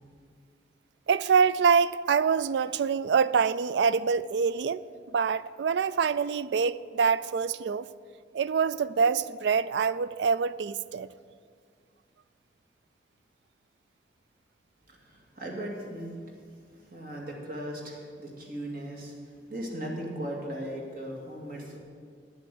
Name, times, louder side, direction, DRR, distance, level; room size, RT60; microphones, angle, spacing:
voice 1, 1.1-7.9 8.3-11.1, right 6 dB, 75° right, 0.3 m, -25 dB
voice 2, 14.9-16.2 16.9-21.8, right 1 dB, 55° right, 2.3 m, -38 dB
10.0 x 7.8 x 7.7 m
head